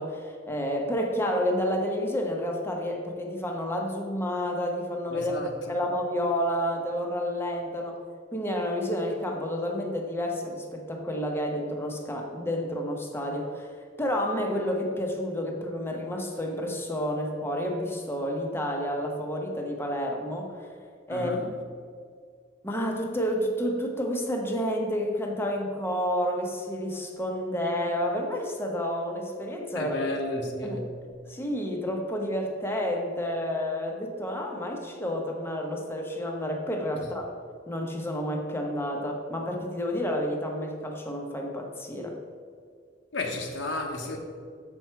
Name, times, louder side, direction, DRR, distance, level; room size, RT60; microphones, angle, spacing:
voice 1, 0.0-5.3 5.7-8.0 8.3-13.7 14.0-20.7 21.1-21.3 22.6-30.0 30.6-30.8 31.3-37.3 37.7-42.2, equal, 10° left, 1.0 m, -30 dB
voice 2, 5.1-5.7 21.1-21.5 29.7-30.9 43.1-44.2, left 2 dB, 65° left, 1.1 m, -33 dB
7.9 x 6.0 x 4.5 m
head